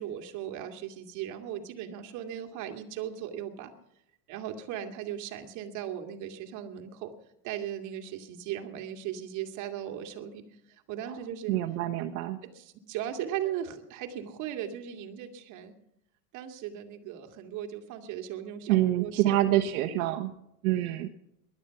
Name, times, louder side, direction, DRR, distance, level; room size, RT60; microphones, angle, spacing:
voice 1, 0.0-3.7 4.3-7.1 7.4-11.5 12.4-15.7 16.3-20.2, right 10 dB, 40° right, 4 dB, 2.2 m, -38 dB
voice 2, 11.5-12.4 18.7-20.3 20.6-21.1, right 14 dB, 65° right, 6 dB, 1.2 m, -26 dB
20.0 x 11.5 x 5.8 m, 0.81 s
supercardioid pair, 155°, 46 cm